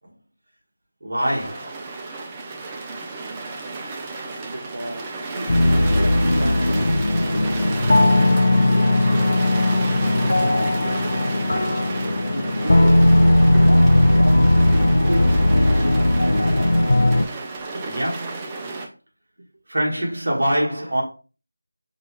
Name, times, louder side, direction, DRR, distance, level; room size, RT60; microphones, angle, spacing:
voice 1, 1.0-1.9 17.8-18.5 19.7-21.0, right 1 dB, 50° right, 1.6 m, -24 dB
sound 1, 1.2-18.9, right 3 dB, 15° right, 0.4 m, -32 dB
voice 2, 4.4-6.8 7.2-8.3 8.7-9.6 10.0-10.8 12.2-13.0 13.5-14.7 15.0-16.8 17.7-17.9, right 1 dB, 80° right, 0.7 m, -33 dB
sound 2, 5.5-17.3, left 1 dB, 65° left, 0.4 m, -17 dB
5.9 x 2.4 x 3.1 m
figure-of-eight pair, 170°, 0 cm